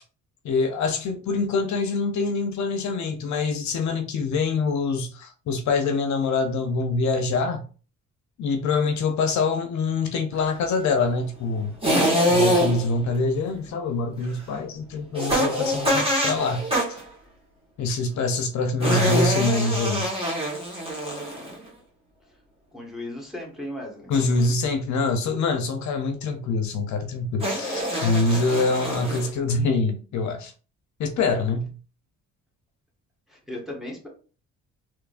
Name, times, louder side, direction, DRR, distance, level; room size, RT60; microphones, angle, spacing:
voice 1, 0.4-7.6 8.4-11.7 12.3-16.7 17.8-20.1 24.1-30.5 31.0-31.8, left 3 dB, 70° left, 0.7 m, -25 dB
sound 1, 11.8-13.0 15.1-17.0 18.8-21.7 24.1-24.5 27.4-29.3, equal, 20° right, 1.8 m, -24 dB
voice 2, 22.7-24.1 33.3-34.1, left 1 dB, ahead, 1.5 m, -36 dB
3.7 x 3.0 x 2.5 m
cardioid pair, 90°, 30 cm